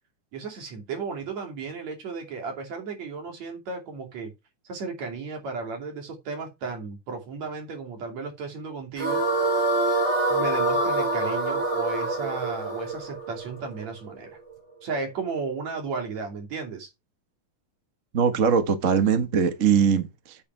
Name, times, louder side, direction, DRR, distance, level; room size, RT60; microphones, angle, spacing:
voice 1, 0.3-4.3 4.7-9.2 10.3-14.4 14.8-16.9, right 4 dB, 65° right, 4.0 m, -34 dB
sound 1, 9.0-14.2, right 2 dB, 25° right, 5.5 m, -25 dB
voice 2, 18.1-20.4, right 7 dB, 40° right, 1.2 m, -21 dB
8.6 x 8.5 x 4.6 m
omnidirectional pair, 3.4 m